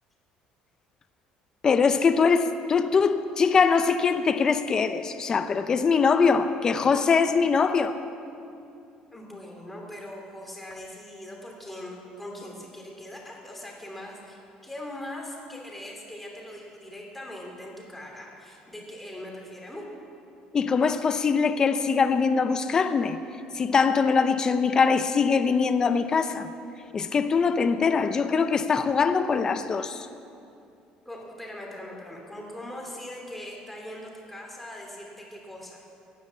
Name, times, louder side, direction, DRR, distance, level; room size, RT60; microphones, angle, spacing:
voice 1, 1.6-8.0 20.5-23.2 23.5-26.5 26.9-30.1, left 5 dB, 25° left, 0.6 m, -22 dB
voice 2, 9.1-19.9 31.0-35.9, left 1 dB, 5° left, 2.8 m, -41 dB
15.0 x 10.0 x 8.3 m
cardioid pair, 150°, 3 cm